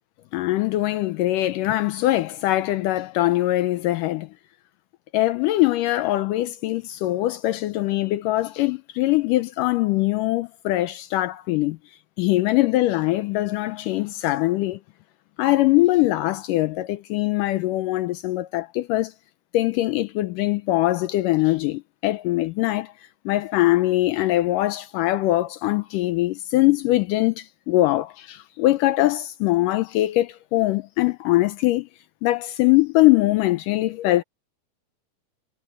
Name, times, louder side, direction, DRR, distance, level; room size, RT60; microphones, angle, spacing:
voice 1, 0.3-4.3 5.1-11.8 12.2-14.8 15.4-19.1 19.5-22.9 23.3-31.9 32.2-34.2, left 17 dB, 80° left, 1.9 m, -22 dB
omnidirectional pair, 4.4 m